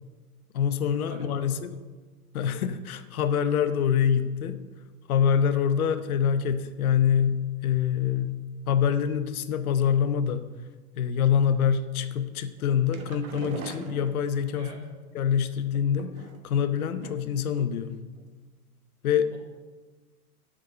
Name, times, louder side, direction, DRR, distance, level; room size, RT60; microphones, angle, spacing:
voice 1, 0.5-1.7 2.3-4.6 5.1-10.4 11.0-14.8 15.1-16.2 16.4-18.0 19.0-19.3, left 8 dB, 65° left, 10 dB, 0.9 m, -25 dB
voice 2, 1.1-1.6 5.8-6.0 14.5-14.8 19.3-19.4, right 1 dB, 80° right, -3 dB, 3.0 m, -43 dB
sound 1, 12.6-14.7 15.7-16.6 17.0-17.4 17.7-17.8 18.2-18.3, right 5 dB, 60° right, 1.2 m, -41 dB
6.4 x 6.2 x 7.5 m, 1.3 s
figure-of-eight pair, 100°, 46 cm